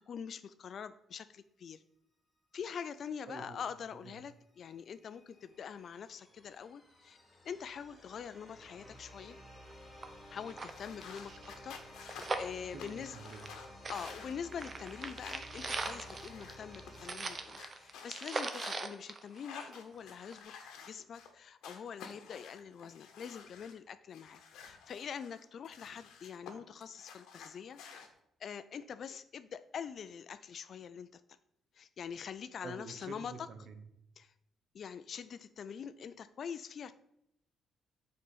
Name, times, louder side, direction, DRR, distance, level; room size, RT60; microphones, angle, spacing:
voice 1, 0.1-1.8 2.5-7.2 7.4-9.4 10.3-13.2 13.9-20.5 20.9-27.9 28.4-31.2 31.7-33.5 34.2-34.3 34.7-36.9, left 7 dB, 60° left, 13 dB, 0.3 m, -44 dB
voice 2, 3.3-3.6 4.0-4.1 11.3-11.5 12.7-13.5 32.6-33.8, right 5 dB, 65° right, 8 dB, 0.9 m, -48 dB
sound 1, 4.5-18.4, left 1 dB, 20° left, 2.6 m, -54 dB
sound 2, 9.7-9.8 10.0-10.1 10.4-13.6 13.8-19.9 20.3-20.4, right 3 dB, 35° right, 0.7 m, -41 dB
sound 3, 10.6-18.8 19.3-21.3 21.6-23.7 24.1-26.5 26.8-28.1, left 6 dB, 85° left, 1.0 m, -52 dB
6.5 x 4.4 x 5.4 m, 0.78 s
cardioid pair, 90°, 0 cm